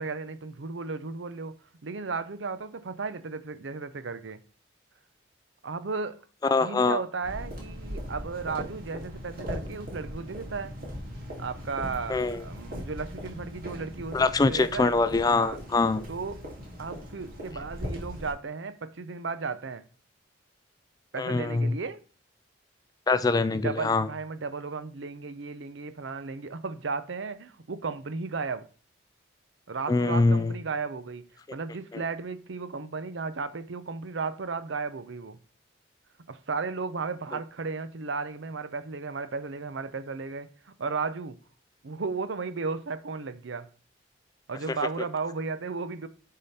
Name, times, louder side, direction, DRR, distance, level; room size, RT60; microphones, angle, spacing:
voice 1, 0.0-4.4 5.6-6.2 6.6-10.8 11.4-14.9 15.2-15.6 16.1-16.4 16.8-19.8 21.1-22.0 23.5-28.7 29.7-31.2 31.5-35.4 36.3-41.4 41.8-43.7 44.5-46.1, right 4 dB, 75° right, 0.6 m, -34 dB
voice 2, 6.4-7.0 12.1-12.4 14.1-16.1 21.2-21.8 23.1-24.1 29.9-30.6 31.9-32.0 44.7-44.8, left 3 dB, 20° left, 0.3 m, -24 dB
sound 1, 7.2-18.3, equal, 50° right, 2.6 m, -39 dB
9.9 x 3.7 x 4.2 m
head